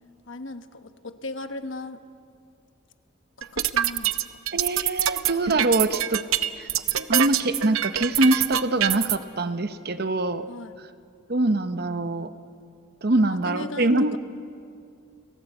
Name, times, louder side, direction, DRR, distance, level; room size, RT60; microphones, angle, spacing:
voice 1, 0.3-2.0 3.4-4.2 10.5-10.8 13.2-14.2, left 2 dB, 60° left, 8 dB, 1.2 m, -37 dB
sound 1, 3.4-9.2, right 11 dB, 75° right, 0.8 m, -24 dB
voice 2, 4.5-6.2 6.6-6.7 7.0-10.5 11.3-12.3 13.0-14.2, right 2 dB, 45° right, 10 dB, 0.8 m, -24 dB
29.5 x 18.0 x 8.0 m, 2.4 s
head